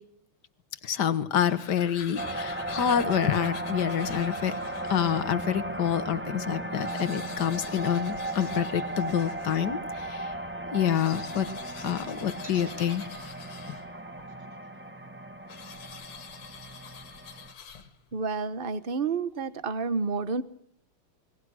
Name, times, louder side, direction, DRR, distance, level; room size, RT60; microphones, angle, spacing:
voice 1, 0.8-4.5 4.9-10.3 10.7-11.5 11.8-13.0, left 9 dB, 55° left, 14 dB, 1.8 m, -27 dB
sound 1, 1.3-5.4 5.9-6.0 6.2-6.3 6.6-9.8 10.7-14.2 15.5-18.2, left 7 dB, 90° left, 2.7 m, -46 dB
sound 2, 2.1-17.5, right 1 dB, 5° right, 1.0 m, -36 dB
sound 3, 12.4-16.5, right 1 dB, 25° right, 5.3 m, -49 dB
voice 2, 18.1-20.4, right 4 dB, 40° right, 15 dB, 0.8 m, -29 dB
29.5 x 21.5 x 6.3 m, 0.65 s
omnidirectional pair, 2.4 m